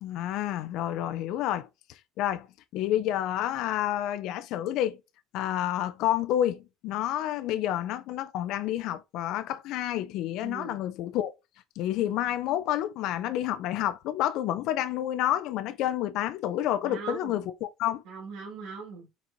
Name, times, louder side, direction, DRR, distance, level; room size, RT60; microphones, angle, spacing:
voice 1, 0.0-2.5 2.7-5.0 5.3-11.3 11.8-18.0, left 12 dB, 65° left, 0.4 m, -29 dB
voice 2, 10.4-10.8 16.8-17.4 18.0-19.1, right 5 dB, 75° right, 1.7 m, -40 dB
4.4 x 4.1 x 2.5 m
cardioid pair, 140°, 0 cm